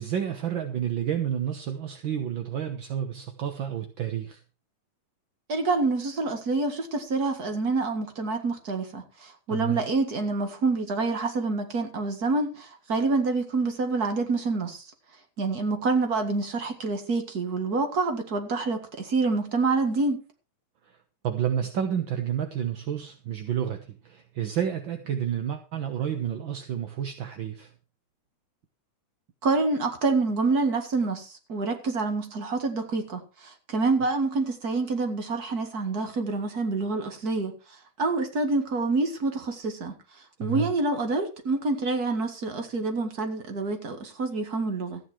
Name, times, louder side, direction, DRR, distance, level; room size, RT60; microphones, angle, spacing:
voice 1, 0.0-4.4 9.5-9.8 20.8-21.0 21.2-27.7 40.4-40.7, right 9 dB, 55° right, 1.4 m, -30 dB
voice 2, 5.5-14.8 15.4-20.2 29.4-37.6 38.0-40.0 40.4-45.0, right 3 dB, 35° right, 2.1 m, -27 dB
14.5 x 9.5 x 4.6 m
omnidirectional pair, 3.3 m